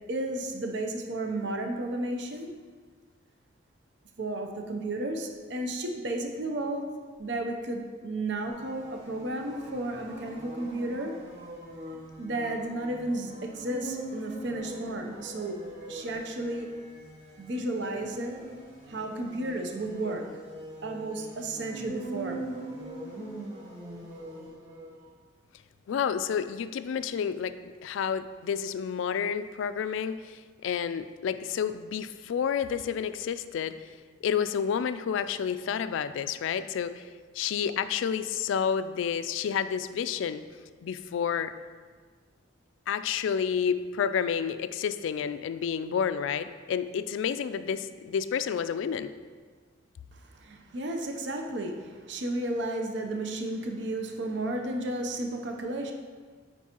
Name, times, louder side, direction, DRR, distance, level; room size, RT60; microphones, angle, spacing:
voice 1, 0.1-2.5 4.2-6.8 7.2-11.2 11.9-15.6 15.9-16.7 17.4-18.4 18.9-20.2 20.8-22.4 50.1-55.9, right 1 dB, 60° right, 3 dB, 0.6 m, -33 dB
sound 1, 8.4-25.0, right 1 dB, 30° right, 1.6 m, -42 dB
voice 2, 25.9-27.5 27.8-33.7 34.2-37.0 37.3-40.4 40.8-41.5 42.9-49.1, left 7 dB, 75° left, 12 dB, 0.3 m, -30 dB
9.1 x 4.5 x 2.9 m, 1.5 s
head